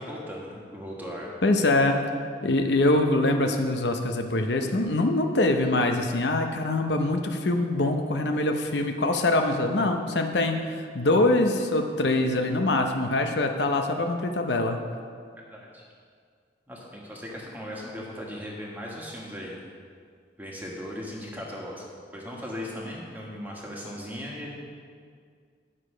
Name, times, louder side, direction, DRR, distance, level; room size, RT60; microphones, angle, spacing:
voice 1, 0.0-1.3 15.5-15.8 16.7-19.6 20.4-21.8 22.1-24.5, equal, 10° right, -3 dB, 1.5 m, -38 dB
voice 2, 1.4-2.0 2.4-14.8, left 2 dB, 75° left, 5 dB, 0.7 m, -24 dB
10.0 x 6.7 x 5.0 m, 2.1 s
head